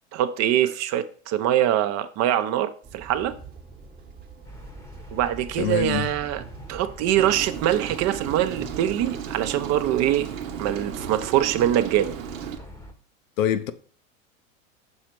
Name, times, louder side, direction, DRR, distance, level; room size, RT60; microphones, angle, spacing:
voice 1, 0.1-3.3 5.1-6.4 6.7-10.3 10.6-12.1, right 12 dB, 40° right, 0.6 m, -23 dB
Walk footsteps / Chatter / Hiss, 2.8-8.8, right 5 dB, 20° right, 1.1 m, -45 dB
sound 1, 4.4-12.9, left 1 dB, 5° left, 0.9 m, -43 dB
voice 2, 5.6-6.1 13.4-13.7, left 10 dB, 75° left, 0.8 m, -24 dB
Rain, 7.2-12.6, right 10 dB, 75° right, 0.9 m, -35 dB
6.3 x 4.1 x 4.6 m
hypercardioid pair, 95°, 40 cm